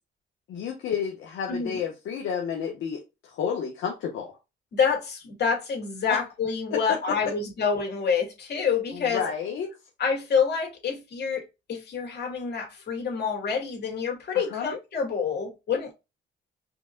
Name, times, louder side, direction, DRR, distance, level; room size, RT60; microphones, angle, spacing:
voice 1, 0.5-4.4 6.7-7.0 8.9-9.7 14.5-14.7, left 7 dB, 80° left, 1.2 m, -31 dB
voice 2, 1.5-1.8 4.7-9.2 10.0-15.9, left 6 dB, 55° left, 2.4 m, -27 dB
5.1 x 3.8 x 2.3 m
cardioid pair, 90°, 20 cm